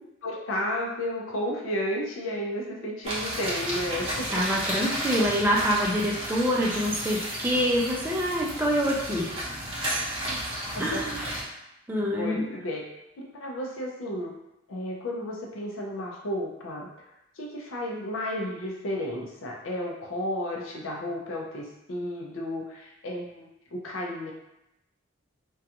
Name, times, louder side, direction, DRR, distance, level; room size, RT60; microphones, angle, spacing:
voice 1, 0.2-4.4 10.3-10.4 10.7-11.0 12.2-12.8 13.4-14.3 14.7-16.9 17.4-24.3, left 1 dB, 70° left, -1 dB, 0.5 m, -32 dB
sound 1, 3.0-11.4, right 1 dB, 25° right, 0.8 m, -33 dB
voice 2, 4.3-9.4 10.8-11.3 11.9-12.5, equal, 10° right, -3 dB, 0.4 m, -26 dB
2.4 x 2.2 x 2.7 m, 0.89 s
head